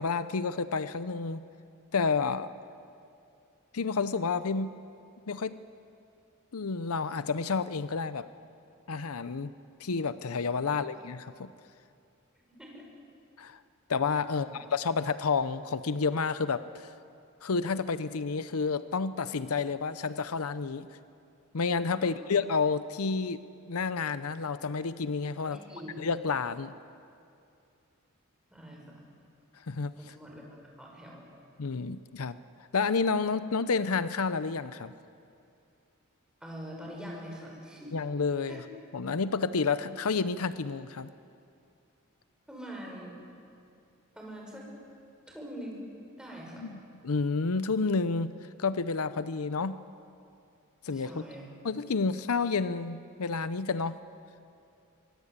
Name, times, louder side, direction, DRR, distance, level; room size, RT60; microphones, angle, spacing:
voice 1, 0.0-1.4 1.9-2.5 3.7-4.7 5.3-5.6 6.5-8.3 8.9-9.5 9.8-11.5 13.4-13.6 13.9-16.9 17.4-20.9 21.5-25.6 26.0-26.7 29.7-30.1 31.6-32.4 32.7-34.9 37.9-38.6 38.9-41.1 46.6-49.8 50.8-51.2 51.6-54.0, left 4 dB, 80° left, 13 dB, 0.7 m, -30 dB
voice 2, 12.5-12.9 14.3-14.7 21.9-22.1 25.4-25.9 28.5-29.0 30.0-30.4 30.8-31.3 36.4-37.9 38.5-38.6 42.5-43.2 44.1-44.7 45.3-45.8 46.2-46.7 50.9-51.5, equal, 5° right, -1 dB, 6.2 m, -44 dB
24.5 x 22.0 x 8.3 m, 2.5 s
head